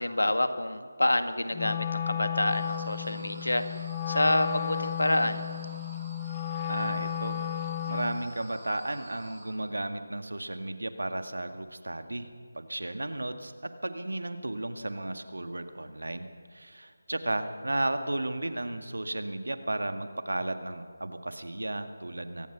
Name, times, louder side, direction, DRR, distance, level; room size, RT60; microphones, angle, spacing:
voice 1, 0.0-5.4, left 1 dB, 90° left, 8 dB, 1.9 m, -28 dB
Wind instrument woodwind instrument, 1.5-8.2, left 9 dB, 20° left, 1.0 m, -33 dB
sound 1, 2.5-9.5, right 1 dB, 15° right, 7.8 m, -50 dB
voice 2, 6.7-12.3 12.5-13.5 13.8-22.5, right 1 dB, 80° right, 8 dB, 2.0 m, -34 dB
24.0 x 18.5 x 6.1 m, 2.1 s
figure-of-eight pair, 165°, 0 cm